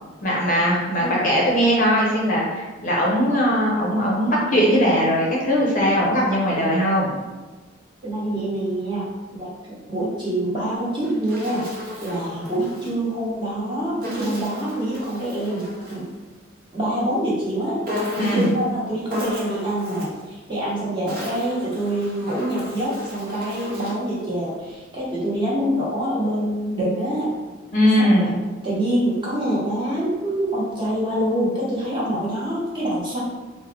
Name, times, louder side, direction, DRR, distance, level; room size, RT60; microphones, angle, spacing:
voice 1, 0.2-7.1 18.1-18.5 27.7-28.3, equal, 40° left, -3 dB, 0.6 m, -20 dB
voice 2, 8.0-9.1 9.4-9.5 9.9-11.7 12.0-16.0 16.7-17.8 18.2-27.3 28.0-28.3 28.6-33.2, right 1 dB, 25° right, -8 dB, 1.1 m, -25 dB
Insect, 10.8-13.0 14.0-16.1 17.8-18.7 19.1-20.2 20.9-24.1, left 1 dB, 50° right, 0.8 m, -34 dB
3.6 x 2.0 x 3.3 m, 1.3 s
head